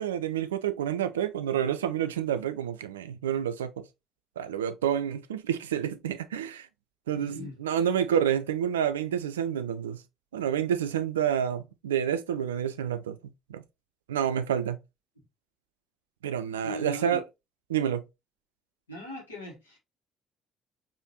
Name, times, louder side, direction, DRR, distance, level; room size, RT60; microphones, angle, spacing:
voice 1, 0.0-3.9 4.4-6.7 7.1-7.3 7.6-10.0 10.3-13.6 14.1-14.8 16.2-17.2 17.7-18.0, right 9 dB, 75° right, 0.3 m, -29 dB
voice 2, 7.1-7.5 15.2-15.3 16.6-17.2 18.9-19.8, equal, 80° left, 1.4 m, -39 dB
4.8 x 2.7 x 2.8 m
figure-of-eight pair, 50°, 0 cm